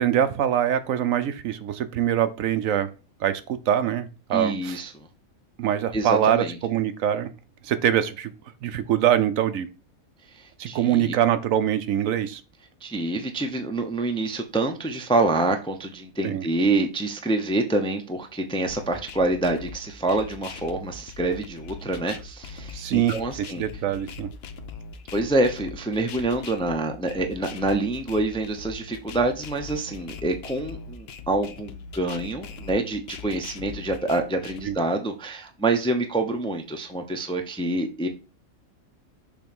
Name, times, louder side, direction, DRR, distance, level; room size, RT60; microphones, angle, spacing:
voice 1, 0.0-2.9 3.2-4.8 5.6-7.3 7.6-8.3 8.6-9.7 10.6-12.4 16.2-16.4 22.7-24.3 34.7-34.8, right 10 dB, 70° right, 1.0 m, -24 dB
voice 2, 4.3-4.9 5.9-6.6 10.3-11.1 12.8-23.6 25.1-38.1, right 2 dB, 5° left, 0.5 m, -26 dB
sound 1, 18.7-34.7, left 5 dB, 55° left, 0.8 m, -41 dB
7.0 x 3.0 x 5.3 m
omnidirectional pair, 1.5 m